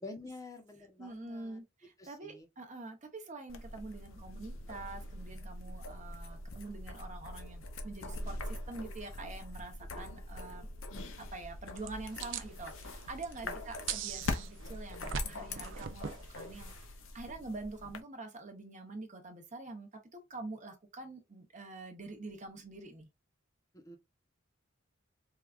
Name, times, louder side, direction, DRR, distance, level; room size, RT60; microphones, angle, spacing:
voice 1, 0.0-1.6 2.0-2.5 5.9-6.0 9.9-10.2 13.4-13.6 17.3-17.4 23.7-24.0, left 2 dB, 15° left, 0.7 m, -49 dB
voice 2, 1.0-10.7 11.2-16.9 17.1-23.1, right 2 dB, 40° right, 0.8 m, -46 dB
sound 1, 3.5-18.0, left 2 dB, 90° left, 0.7 m, -43 dB
sound 2, 11.8-16.9, right 6 dB, 70° right, 0.5 m, -42 dB
4.6 x 2.3 x 2.4 m
head